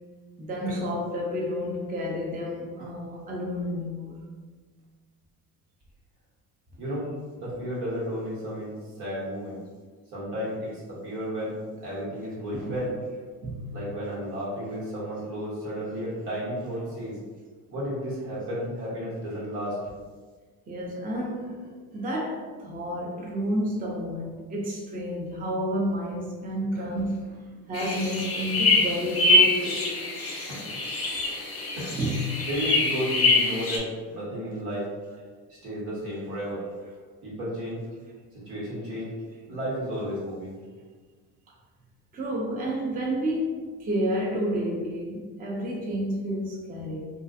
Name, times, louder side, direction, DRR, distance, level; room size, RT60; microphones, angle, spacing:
voice 1, 0.4-4.3 12.7-12.8 13.4-13.8 20.7-27.4 27.7-30.1 31.0-31.3 32.0-32.2 42.1-47.1, equal, 20° right, 0.5 m, -30 dB
voice 2, 6.8-7.1 7.4-9.6 10.1-12.9 13.7-17.2 17.7-19.8 26.7-26.8 30.5-30.6 31.8-32.0 32.4-34.9 35.5-36.6 37.2-37.8 38.3-39.1 39.5-40.6, equal, 80° right, 1.3 m, -33 dB
sound 1, 27.7-33.8, left 2 dB, 30° left, 0.7 m, -24 dB
2.4 x 2.2 x 2.5 m
supercardioid pair, 75°, 46 cm